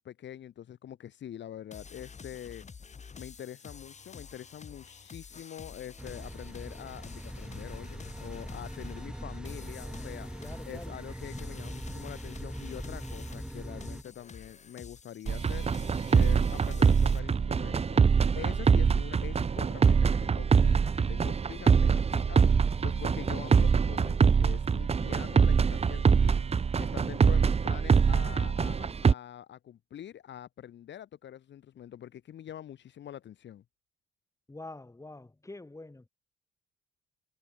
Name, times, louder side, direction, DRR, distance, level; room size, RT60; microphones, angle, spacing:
voice 1, 0.0-2.6 3.2-10.3 10.6-18.0 18.4-33.6, left 10 dB, 65° left, 1.9 m, -45 dB
sound 1, 1.7-17.2, left 5 dB, 35° left, 2.4 m, -49 dB
sound 2, 6.0-14.0, right 1 dB, 5° right, 1.5 m, -41 dB
voice 2, 10.4-11.0 34.5-36.1, left 2 dB, 15° left, 7.4 m, -45 dB
sound 3, 15.3-29.1, right 6 dB, 30° right, 0.9 m, -24 dB
cardioid pair, 90°, 20 cm